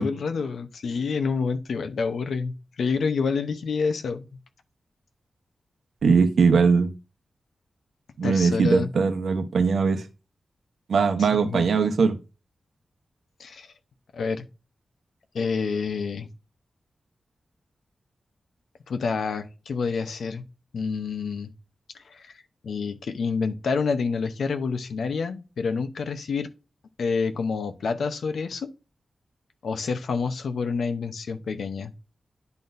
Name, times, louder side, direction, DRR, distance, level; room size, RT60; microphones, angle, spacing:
voice 1, 0.0-4.3 8.2-8.9 11.2-11.7 13.4-13.7 14.1-14.5 15.3-16.3 18.9-20.4 20.7-21.5 21.9-22.4 22.6-26.5 27.0-28.7 29.6-31.9, left 5 dB, 85° left, 0.8 m, -28 dB
voice 2, 6.0-6.9 8.2-10.0 10.9-12.2, right 5 dB, 75° right, 0.9 m, -20 dB
10.5 x 4.0 x 2.6 m
wide cardioid pair, 165°, 0 cm